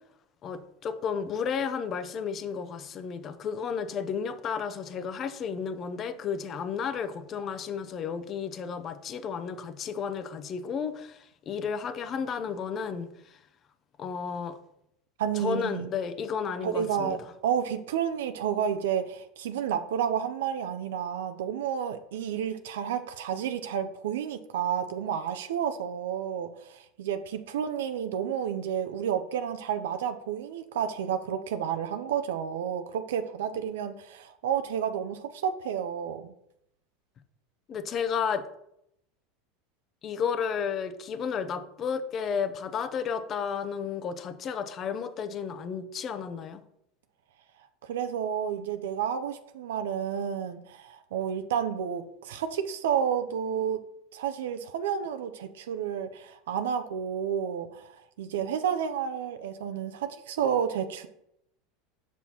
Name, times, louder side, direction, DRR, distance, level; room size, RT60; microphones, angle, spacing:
voice 1, 0.4-13.1 14.0-14.6 15.4-17.2 37.7-38.4 40.0-46.6, left 6 dB, 35° left, 0.6 m, -32 dB
voice 2, 15.2-15.9 16.6-36.3 47.8-53.8 54.1-61.1, right 8 dB, 90° right, 0.4 m, -31 dB
6.1 x 5.4 x 2.9 m
supercardioid pair, 115°, 0 cm